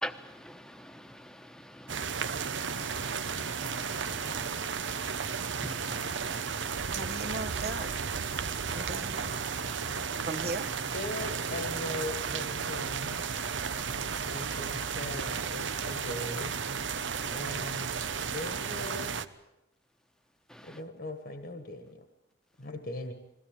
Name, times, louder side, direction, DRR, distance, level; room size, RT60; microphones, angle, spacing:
voice 1, 0.0-4.4 5.6-6.4 9.6-9.7 20.5-20.8, equal, 5° left, 1.1 m, -45 dB
sound 1, 1.9-19.3, right 6 dB, 80° right, 1.0 m, -34 dB
voice 2, 4.3-4.7 10.9-13.5 14.2-16.6 17.3-18.0 18.3-19.2 20.6-22.0 22.6-23.1, left 1 dB, 55° left, 1.6 m, -40 dB
voice 3, 6.9-7.9 8.7-9.3 10.2-10.7, right 2 dB, 55° right, 1.3 m, -37 dB
22.0 x 17.0 x 8.9 m
head